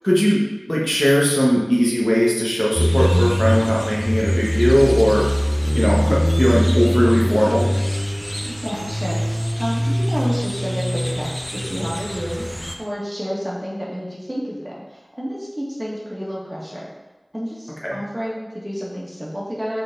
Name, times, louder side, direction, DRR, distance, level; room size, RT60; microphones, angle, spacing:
voice 1, 0.0-0.4 0.7-5.2 5.7-7.7 17.8-18.0, equal, 25° left, -5 dB, 1.2 m, -18 dB
sound 1, 2.7-12.7, equal, 10° left, 0.7 m, -22 dB
voice 2, 8.4-16.9 17.3-19.8, equal, 25° right, -6 dB, 1.9 m, -30 dB
6.4 x 4.2 x 3.8 m, 1.1 s
wide cardioid pair, 45°, 0 cm